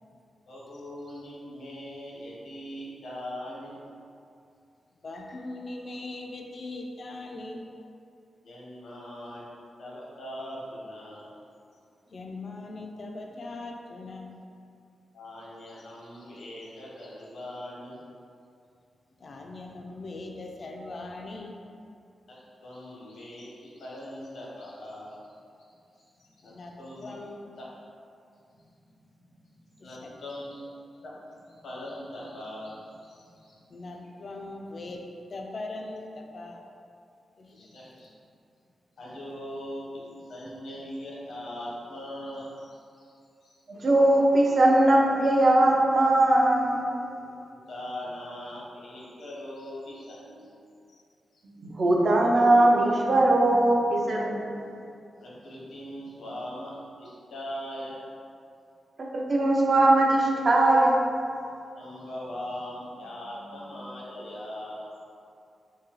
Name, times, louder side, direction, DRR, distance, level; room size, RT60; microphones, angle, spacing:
voice 1, 0.5-3.8 8.4-11.3 11.7-11.8 15.1-18.0 22.3-25.2 25.7-27.2 27.6-27.7 28.6-28.8 29.3-33.6 37.5-38.1 39.0-43.1 43.4-43.9 47.5-50.5 50.9-51.0 51.3-51.4 55.2-58.0 61.7-64.9, left 1 dB, 85° left, -5 dB, 0.9 m, -41 dB
voice 2, 5.0-7.6 12.1-14.3 19.2-21.6 26.4-27.5 29.8-30.2 33.7-36.6 37.4-37.5, left 2 dB, 50° left, 2 dB, 0.3 m, -40 dB
voice 3, 43.7-46.8 51.4-54.4 59.0-61.1, right 1 dB, 45° right, -1 dB, 0.5 m, -20 dB
3.7 x 2.6 x 3.0 m, 2.5 s
wide cardioid pair, 105°, 0 cm